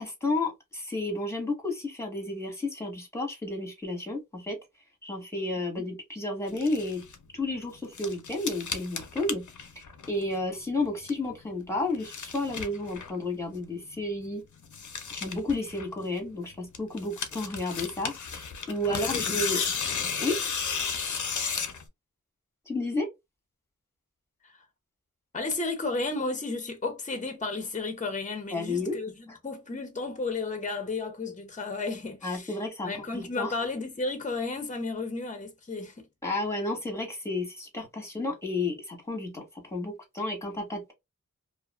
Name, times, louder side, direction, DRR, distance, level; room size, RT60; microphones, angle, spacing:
voice 1, 0.0-4.6 5.0-7.0 7.3-9.4 9.7-14.4 15.1-19.6 20.2-20.4 22.7-23.1 28.5-29.0 29.3-29.4 32.2-33.6 36.2-40.9, left 2 dB, 10° left, 1.2 m, -32 dB
sound 1, 6.5-7.2 7.6-10.4 10.7-11.3 11.7-13.2 13.6-13.7 13.9-14.0 14.2-14.3 14.6-16.3 16.7-21.8, left 6 dB, 70° left, 0.6 m, -34 dB
voice 2, 18.9-19.4 24.4-24.6 25.3-32.5 32.8-36.1, left 3 dB, 25° left, 0.6 m, -33 dB
2.4 x 2.3 x 2.3 m
wide cardioid pair, 70°, 31 cm